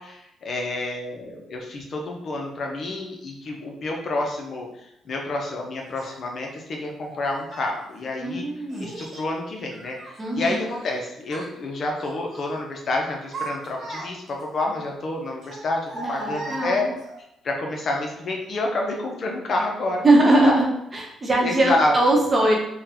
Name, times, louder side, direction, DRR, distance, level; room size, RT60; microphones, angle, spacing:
voice 1, 0.0-4.7 5.1-8.5 8.8-10.0 10.3-16.9 17.4-20.0 20.5-20.6 21.4-21.9, left 2 dB, 55° left, 1 dB, 0.6 m, -28 dB
Child speech kid speaking, 5.9-6.1 7.0-7.8 8.7-9.3 9.7-11.0 11.2-11.5 12.0-12.6 13.0-14.4 15.4-17.1, right 2 dB, 55° right, 1.1 m, -37 dB
voice 2, 8.2-8.9 10.2-10.6 15.9-16.9 20.0-20.7 20.9-22.5, right 2 dB, 30° right, -1 dB, 0.8 m, -21 dB
3.6 x 2.2 x 2.8 m, 0.83 s
cardioid pair, 90°, 0 cm